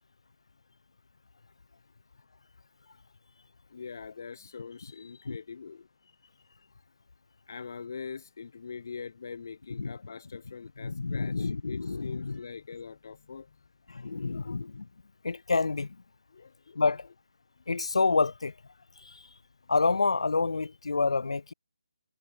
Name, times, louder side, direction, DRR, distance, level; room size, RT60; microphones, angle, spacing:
voice 1, 3.7-6.1 7.5-13.5 14.3-14.6 16.3-16.8, left 5 dB, 35° left, 1.5 m, -43 dB
voice 2, 10.8-12.4 13.9-14.9 15.2-15.9 16.8-17.1 17.7-18.5 19.7-21.5, left 4 dB, 75° left, 0.4 m, -28 dB
hypercardioid pair, 180°, 3 cm